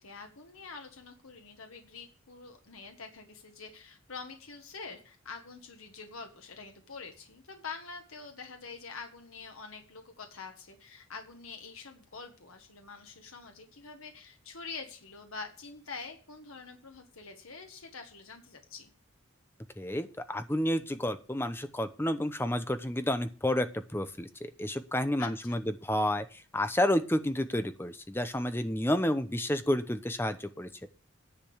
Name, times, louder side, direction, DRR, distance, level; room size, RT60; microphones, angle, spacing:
voice 1, 0.0-18.9 25.2-25.6, left 4 dB, 85° left, 5 dB, 1.5 m, -46 dB
voice 2, 19.8-23.7 23.9-30.7, left 1 dB, 10° left, 10 dB, 0.8 m, -30 dB
10.5 x 5.2 x 8.0 m, 0.37 s
head